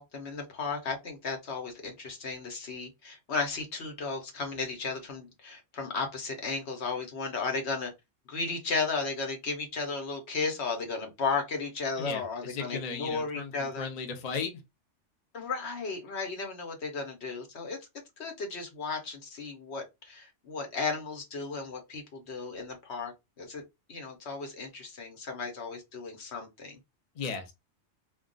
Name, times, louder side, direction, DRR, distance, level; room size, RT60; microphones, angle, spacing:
voice 1, 0.0-7.9 8.3-13.9 15.3-17.8 18.2-23.6 23.9-26.8, left 4 dB, 70° left, 1.1 m, -34 dB
voice 2, 12.0-14.5 27.1-27.5, left 5 dB, 45° left, 0.6 m, -36 dB
2.3 x 2.2 x 3.7 m
omnidirectional pair, 1.2 m